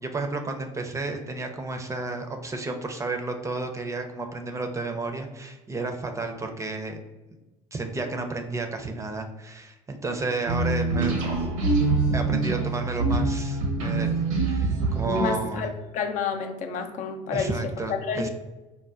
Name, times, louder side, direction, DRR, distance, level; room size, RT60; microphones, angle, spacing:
voice 1, 0.0-7.0 7.7-11.2 12.1-15.7 17.3-18.3, right 3 dB, 20° right, 4 dB, 0.5 m, -32 dB
sound 1, 10.5-15.6, right 3 dB, 80° right, 0.8 m, -25 dB
voice 2, 15.2-17.5 17.9-18.3, left 5 dB, 50° left, 5 dB, 0.5 m, -29 dB
4.2 x 2.1 x 2.4 m, 1.1 s
hypercardioid pair, 70°, 16 cm